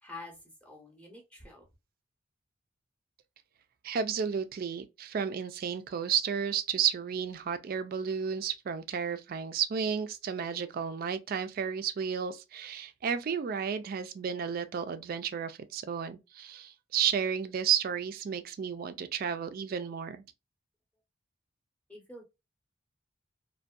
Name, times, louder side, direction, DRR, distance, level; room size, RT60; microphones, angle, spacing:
voice 1, 0.0-1.6 21.9-22.2, left 2 dB, 5° left, 0.6 m, -47 dB
voice 2, 3.8-20.2, right 7 dB, 45° right, 0.3 m, -32 dB
2.5 x 2.2 x 2.2 m
head